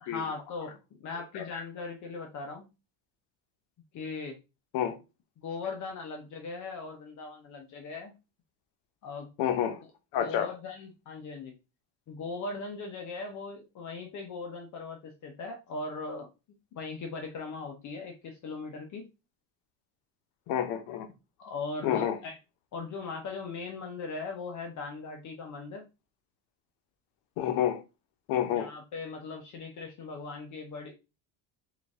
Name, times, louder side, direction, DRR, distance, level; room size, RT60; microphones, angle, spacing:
voice 1, 0.0-2.7 3.9-4.4 5.4-8.1 9.0-9.3 10.2-11.5 12.1-16.3 16.7-19.1 21.4-22.4 22.7-25.8 28.6-30.9, left 4 dB, 45° left, 0.8 m, -39 dB
voice 2, 9.4-9.8 10.1-10.5 20.5-21.1 21.8-22.2 27.4-27.8 28.3-28.7, left 10 dB, 75° left, 0.9 m, -29 dB
3.8 x 2.6 x 3.5 m
cardioid pair, 145°, 41 cm